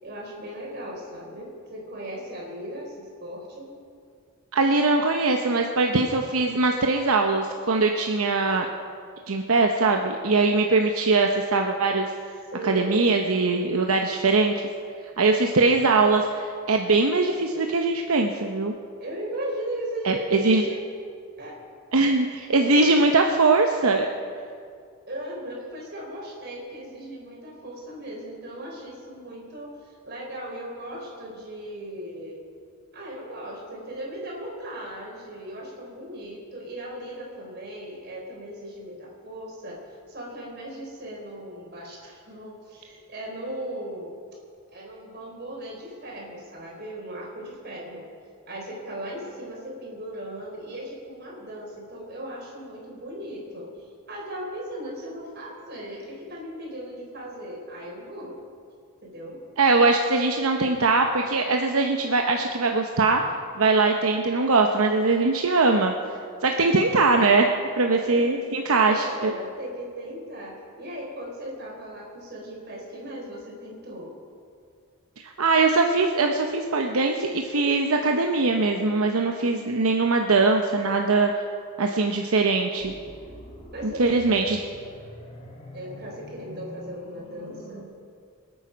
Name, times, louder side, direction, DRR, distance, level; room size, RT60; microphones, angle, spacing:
voice 1, 0.0-3.7 12.5-13.1 19.0-20.8 21.4-21.6 22.5-22.9 25.1-32.4 32.9-39.8 40.1-44.1 44.7-48.1 48.5-53.7 54.1-58.3 59.0-59.4 66.6-66.9 68.0-68.2 68.8-74.1 83.7-84.4 85.7-87.9, right 1 dB, 50° right, -2 dB, 4.2 m, -37 dB
voice 2, 4.5-8.7 9.3-12.1 12.6-14.6 15.2-18.7 20.0-20.6 21.9-24.1 59.6-63.2 63.6-65.9 66.4-67.5 67.8-69.3 75.2-81.3 81.8-82.9 84.0-84.6, right 3 dB, 80° right, 3 dB, 0.8 m, -21 dB
sound 1, 82.8-87.8, left 1 dB, 30° left, 2.1 m, -44 dB
25.5 x 9.0 x 5.2 m, 2.3 s
head